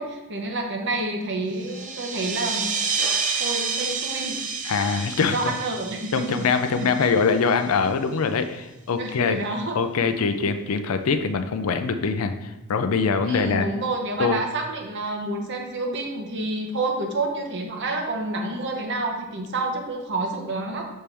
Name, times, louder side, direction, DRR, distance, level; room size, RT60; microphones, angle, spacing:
voice 1, 0.0-2.8 3.4-4.4 5.3-6.5 6.8-7.1 9.0-9.8 13.2-20.9, right 2 dB, 55° right, 2 dB, 0.9 m, -29 dB
sound 1, 1.5-7.7, right 5 dB, 35° right, 0.5 m, -29 dB
voice 2, 4.6-5.4 6.1-9.4 9.8-13.7 14.2-14.4, left 5 dB, 70° left, 8 dB, 0.4 m, -23 dB
6.8 x 4.3 x 3.4 m, 0.99 s
head